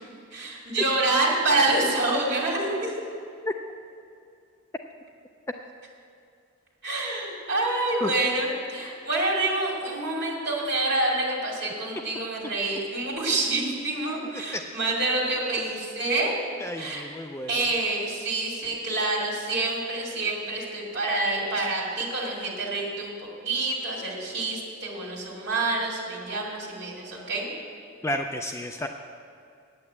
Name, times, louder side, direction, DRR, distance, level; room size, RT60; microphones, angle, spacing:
voice 1, 0.3-3.0 6.8-16.4 16.8-17.0 17.5-27.5, right 2 dB, 50° right, -4 dB, 2.6 m, -27 dB
voice 2, 14.2-14.6 16.6-17.5 28.0-28.9, left 1 dB, 10° left, 4 dB, 0.3 m, -32 dB
8.7 x 8.7 x 8.2 m, 2.4 s
head